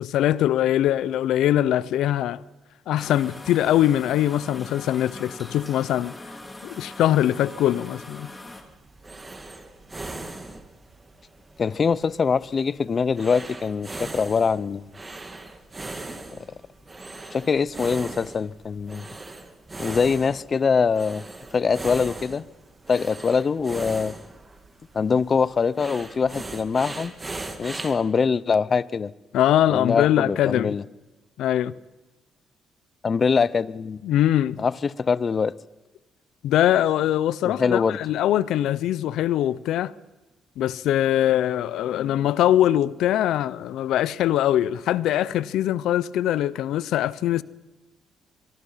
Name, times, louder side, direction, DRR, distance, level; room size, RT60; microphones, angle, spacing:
voice 1, 0.0-2.4 2.9-6.1 6.6-8.3 29.3-30.8 31.4-31.7 34.0-34.6 36.4-39.9 40.6-47.4, left 12 dB, 85° left, 0.7 m, -22 dB
sound 1, 3.0-8.6, left 2 dB, 15° left, 3.2 m, -41 dB
sound 2, 8.4-28.0, right 2 dB, 25° right, 2.5 m, -39 dB
voice 2, 11.6-14.9 17.3-19.0 19.8-21.2 21.5-22.4 22.9-24.1 24.9-27.1 27.6-29.1 29.7-30.8 33.0-34.0 34.6-35.5 37.4-38.0, left 5 dB, 40° left, 0.7 m, -23 dB
24.0 x 23.0 x 5.7 m
cardioid pair, 90°, 0 cm